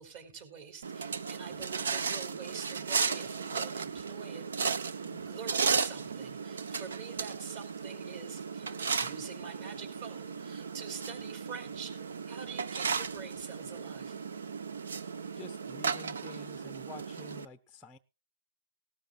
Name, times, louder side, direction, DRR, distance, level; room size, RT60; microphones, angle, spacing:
voice 1, 0.0-4.8 5.1-14.2, right 6 dB, 40° right, 7 dB, 4.4 m, -46 dB
sound 1, 0.8-17.5, right 5 dB, 80° right, 1.0 m, -35 dB
voice 2, 15.3-18.0, left 2 dB, 5° left, 8 dB, 0.7 m, -49 dB
18.5 x 13.0 x 2.5 m, 0.29 s
hypercardioid pair, 155°, 0 cm